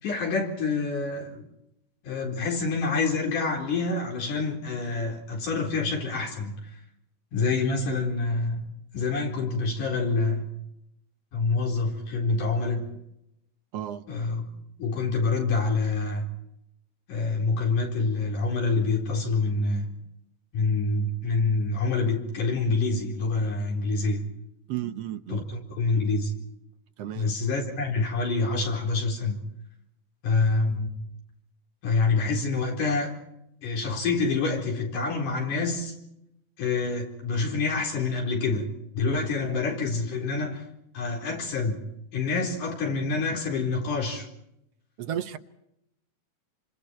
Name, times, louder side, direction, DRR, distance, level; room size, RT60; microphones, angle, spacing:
voice 1, 0.0-1.4 2.0-6.6 7.3-8.6 8.9-10.5 11.3-12.9 14.1-14.5 14.8-16.3 17.1-19.9 20.5-24.2 25.3-26.3 27.1-29.4 30.2-30.9 31.8-33.2 33.6-35.9 36.6-40.6 40.9-41.8 42.1-44.3, left 3 dB, 90° left, 0 dB, 5.7 m, -27 dB
voice 2, 13.7-14.1 24.7-25.5 27.0-27.4 45.0-45.4, right 11 dB, 65° right, 8 dB, 1.8 m, -33 dB
28.5 x 26.5 x 4.5 m, 0.81 s
omnidirectional pair, 3.5 m